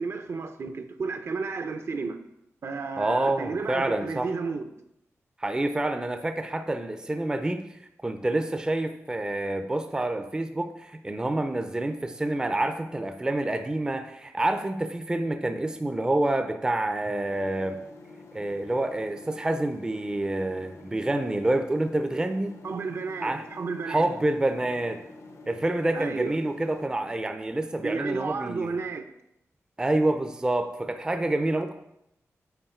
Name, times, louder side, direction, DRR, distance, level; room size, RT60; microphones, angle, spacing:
voice 1, 0.0-2.2 2.6-4.7 22.6-24.1 25.9-26.4 27.8-29.1, right 4 dB, 55° right, 0.6 m, -32 dB
voice 2, 3.0-4.3 5.4-7.6 8.0-17.8 18.3-22.6 23.2-23.4 23.9-25.0 25.5-28.8 29.8-31.7, right 2 dB, 15° right, 0.4 m, -27 dB
sound 1, 17.3-26.9, left 2 dB, 75° left, 0.8 m, -48 dB
8.0 x 4.4 x 4.3 m
wide cardioid pair, 120°, 5 cm